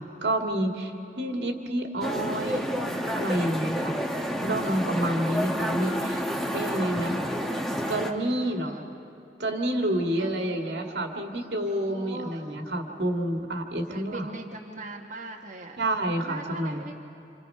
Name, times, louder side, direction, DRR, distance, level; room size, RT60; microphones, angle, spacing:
voice 1, 0.0-2.8 3.1-4.0 4.4-6.2 6.5-7.2 7.9-8.8 9.4-14.3 15.8-17.0, right 1 dB, 75° right, 3 dB, 2.2 m, -29 dB
sound 1, 2.0-8.1, equal, ahead, 1.3 m, -29 dB
voice 2, 2.2-2.6 5.3-6.0 8.2-8.9 10.2-10.7 11.8-12.6 13.9-15.8 16.1-16.9, right 2 dB, 45° right, -1 dB, 1.3 m, -41 dB
28.0 x 27.5 x 5.7 m, 2.8 s
head